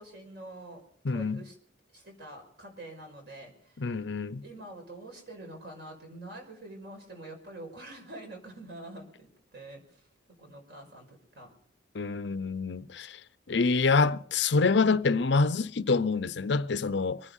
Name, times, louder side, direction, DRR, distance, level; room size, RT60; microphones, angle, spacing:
voice 1, 0.0-1.6 1.9-3.8 4.4-10.1 10.4-11.5, right 1 dB, 55° right, 6.1 m, -46 dB
voice 2, 1.0-1.4 3.8-4.4 11.9-13.2 13.5-17.2, left 4 dB, 65° left, 0.6 m, -26 dB
24.0 x 9.9 x 5.5 m
head